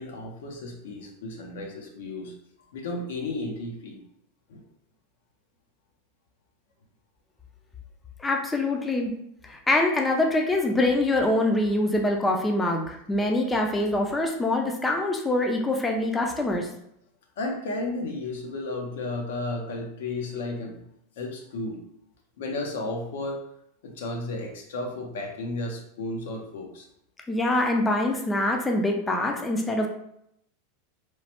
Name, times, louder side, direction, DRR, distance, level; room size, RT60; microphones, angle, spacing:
voice 1, 0.0-2.3 2.7-4.0 4.5-4.6 17.4-20.8 21.2-21.8 22.4-23.4 23.8-26.9, left 2 dB, 80° left, 2 dB, 0.6 m, -33 dB
voice 2, 8.2-9.1 9.4-16.7 27.3-29.9, left 2 dB, 10° left, 2 dB, 0.3 m, -24 dB
3.0 x 2.0 x 2.8 m, 0.75 s
supercardioid pair, 145°, 0 cm